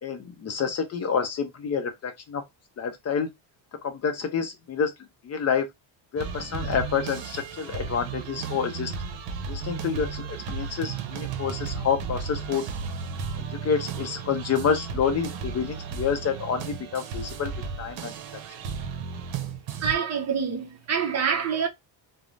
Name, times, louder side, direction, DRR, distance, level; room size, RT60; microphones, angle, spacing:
voice 1, 0.0-2.4 2.8-3.3 3.8-4.9 5.2-5.7 6.1-8.9 9.5-12.6 13.3-17.5 17.8-18.4, left 6 dB, 35° left, 0.4 m, -28 dB
sound 1, 6.2-19.9, right 6 dB, 85° right, 0.7 m, -34 dB
voice 2, 19.8-21.7, right 7 dB, 35° right, 0.5 m, -26 dB
2.5 x 2.0 x 3.0 m
cardioid pair, 120°, 45 cm